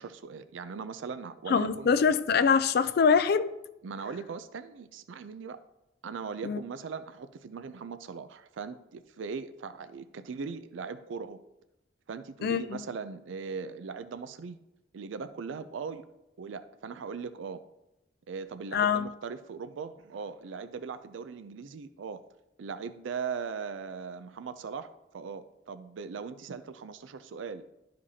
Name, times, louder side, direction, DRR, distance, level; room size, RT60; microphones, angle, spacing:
voice 1, 0.0-1.9 3.8-5.6 6.0-11.4 12.1-14.6 14.9-16.0 16.4-17.6 18.3-22.2 22.6-27.6, right 5 dB, 90° right, 0.4 m, -39 dB
voice 2, 1.5-3.5 6.4-6.6 12.4-12.8 18.7-19.1, left 6 dB, 55° left, 0.4 m, -24 dB
12.0 x 5.1 x 2.8 m
head